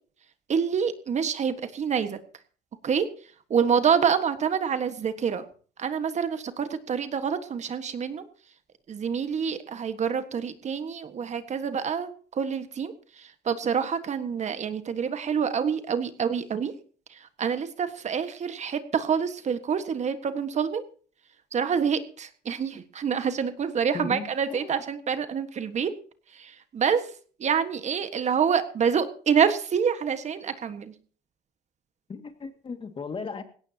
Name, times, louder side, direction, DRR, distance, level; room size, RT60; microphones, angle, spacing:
voice 1, 0.5-2.2 2.8-3.1 3.5-5.4 5.8-8.2 8.9-16.7 17.4-20.8 21.5-25.9 26.3-27.1 27.4-30.9, right 7 dB, 45° right, 10 dB, 1.5 m, -27 dB
voice 2, 23.9-24.8 32.1-33.4, left 4 dB, 30° left, 8 dB, 2.1 m, -36 dB
19.0 x 17.0 x 2.9 m, 0.42 s
cardioid pair, 110°, 17 cm